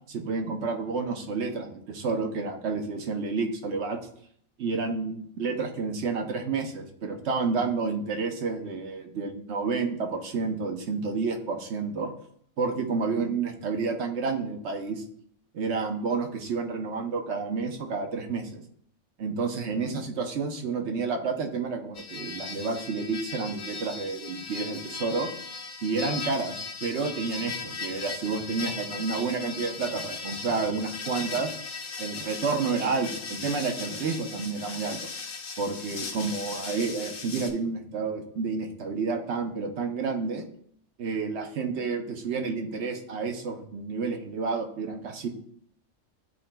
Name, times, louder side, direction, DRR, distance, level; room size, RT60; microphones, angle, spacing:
voice 1, 0.1-4.0 4.6-12.1 12.6-15.0 15.5-18.6 19.2-25.3 25.8-26.5 26.8-31.5 32.0-35.0 35.6-40.5 41.0-45.3, right 4 dB, 65° right, 4 dB, 1.0 m, -30 dB
sound 1, 21.9-37.5, left 4 dB, 90° left, 1.3 m, -38 dB
11.0 x 4.3 x 2.2 m, 0.65 s
omnidirectional pair, 1.3 m